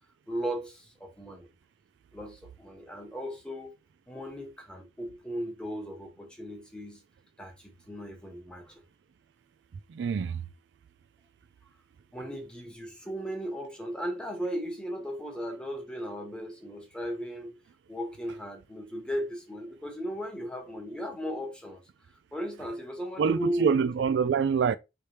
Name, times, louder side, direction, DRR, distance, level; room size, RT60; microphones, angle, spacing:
voice 1, 0.3-1.5 2.1-3.7 4.1-7.0 7.4-8.8 12.1-17.6 17.9-21.8 22.3-23.9, equal, 5° left, 1.1 m, -36 dB
voice 2, 9.9-10.4 23.2-24.8, right 6 dB, 90° right, 0.3 m, -25 dB
4.6 x 3.3 x 2.8 m
head